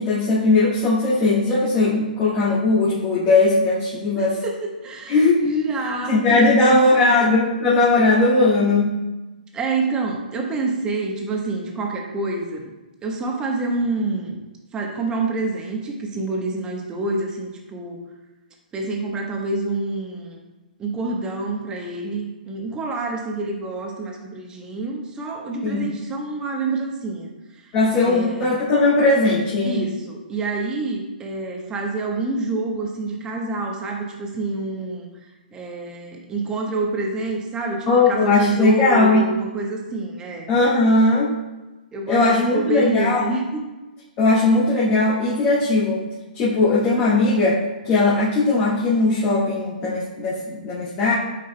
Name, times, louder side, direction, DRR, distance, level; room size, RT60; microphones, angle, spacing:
voice 1, 0.0-4.4 5.1-5.6 6.0-9.0 25.6-25.9 27.7-29.8 37.9-39.2 40.5-41.3 42.1-43.3 44.2-46.0 46.3-51.1, left 2 dB, 30° left, -9 dB, 1.9 m, -18 dB
voice 2, 4.1-7.1 9.5-12.7 13.0-14.4 14.7-18.0 18.7-20.4 20.8-27.7 28.0-28.5 29.6-40.5 41.9-43.6, right 3 dB, 15° right, 1 dB, 1.0 m, -27 dB
9.1 x 5.1 x 2.2 m, 1.1 s
hypercardioid pair, 135°, 5 cm